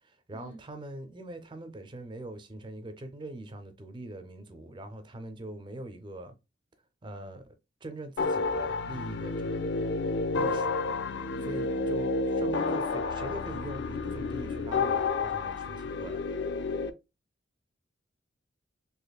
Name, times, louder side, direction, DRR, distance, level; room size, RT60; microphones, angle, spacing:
voice 1, 0.0-6.4 7.0-7.5 7.8-9.6 10.3-10.7 11.5-16.2, right 1 dB, 25° right, 0.4 m, -42 dB
sound 1, 8.2-16.9, left 3 dB, 60° left, 0.3 m, -30 dB
voice 2, 11.3-12.0, equal, 85° left, 1.4 m, -49 dB
4.0 x 2.8 x 2.2 m
head